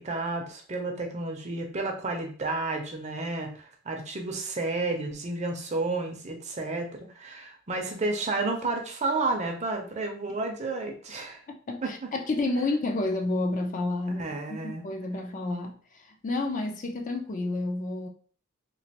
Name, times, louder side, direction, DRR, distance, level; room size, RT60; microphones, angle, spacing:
voice 1, 0.0-11.4 11.8-12.1 14.2-14.8, right 3 dB, 35° right, 0.6 m, -31 dB
voice 2, 11.5-18.1, left 2 dB, 40° left, 0.4 m, -30 dB
3.0 x 2.5 x 2.8 m
head